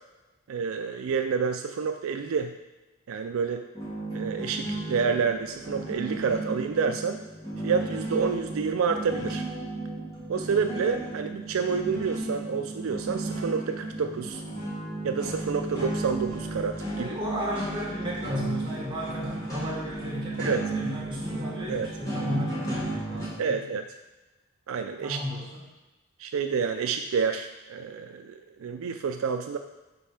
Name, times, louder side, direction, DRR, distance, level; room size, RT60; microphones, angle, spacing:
voice 1, 0.5-2.5 3.1-3.7 4.1-7.2 7.6-9.4 10.3-14.4 15.0-17.1 20.4-20.6 21.7-21.9 23.4-23.8 24.7-25.2 26.2-29.6, right 5 dB, 80° right, 6 dB, 0.4 m, -28 dB
sound 1, 3.7-23.3, right 2 dB, 15° left, 1.9 m, -34 dB
voice 2, 16.9-23.6 25.0-25.7, left 1 dB, 25° right, -6 dB, 1.8 m, -34 dB
5.2 x 4.2 x 5.7 m, 1.1 s
head